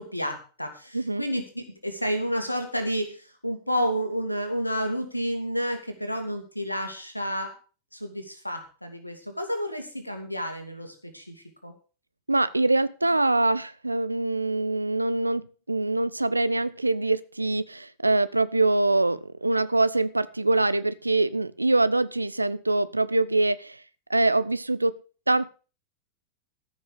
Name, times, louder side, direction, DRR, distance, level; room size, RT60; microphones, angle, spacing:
voice 1, 0.0-7.5 7.9-11.4 11.6-11.7, equal, 85° left, 2.3 m, -30 dB
voice 2, 0.9-1.2 12.3-23.8 24.1-25.0 25.3-25.5, right 2 dB, 85° right, 0.6 m, -24 dB
14.0 x 6.3 x 6.6 m
figure-of-eight pair, 90°, 0 cm